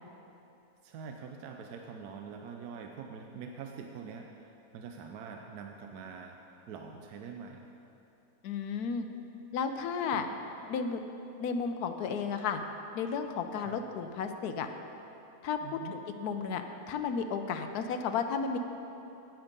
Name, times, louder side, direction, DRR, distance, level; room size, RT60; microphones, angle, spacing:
voice 1, 0.8-6.4 6.7-7.6 10.1-10.2 13.6-13.8 15.6-15.9, right 6 dB, 85° right, 3 dB, 1.2 m, -44 dB
voice 2, 8.4-9.1 9.5-10.3 10.7-11.0 11.4-12.6 12.9-14.7 15.4-15.6 15.9-18.6, left 6 dB, 85° left, 7 dB, 1.2 m, -33 dB
10.5 x 9.0 x 5.3 m, 2.9 s
omnidirectional pair, 1.6 m